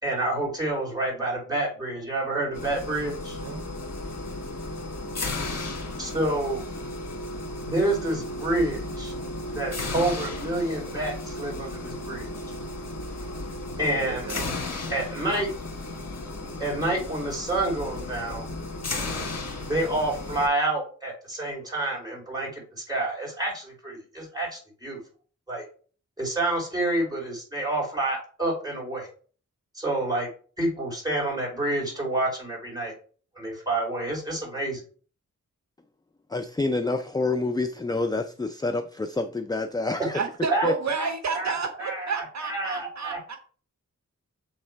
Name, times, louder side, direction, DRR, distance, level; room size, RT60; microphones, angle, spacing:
voice 1, 0.0-3.4 6.0-6.6 7.6-9.1 9.5-12.3 13.8-14.3 14.9-15.5 16.6-18.5 19.7-25.0 25.5-25.6 26.2-29.1 29.7-30.3 30.6-32.9 33.3-34.8 40.5-40.7 41.0-43.2, right 2 dB, 15° right, 3.0 m, -28 dB
sound 1, 2.5-20.5, left 2 dB, 55° left, 1.5 m, -34 dB
voice 2, 3.3-3.8 13.8-14.5 40.1-43.4, right 5 dB, 60° right, 0.7 m, -31 dB
voice 3, 36.3-40.2 40.6-40.7, left 3 dB, 15° left, 0.4 m, -27 dB
7.2 x 3.2 x 4.5 m
wide cardioid pair, 105°, 31 cm